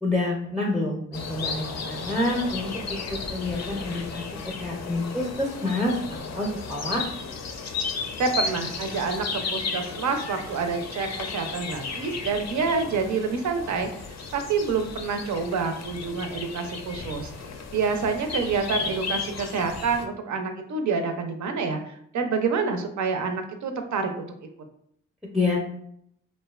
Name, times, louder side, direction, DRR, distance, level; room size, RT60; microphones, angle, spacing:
voice 1, 0.0-3.0 3.3-7.1 25.3-25.7, left 2 dB, ahead, -1 dB, 0.5 m, -28 dB
sound 1, 1.1-20.0, left 4 dB, 55° left, 0.4 m, -34 dB
voice 2, 8.2-13.9 14.3-17.3 17.7-24.3, right 5 dB, 65° right, 6 dB, 0.5 m, -27 dB
2.6 x 2.1 x 2.3 m, 0.69 s
cardioid pair, 45°, 32 cm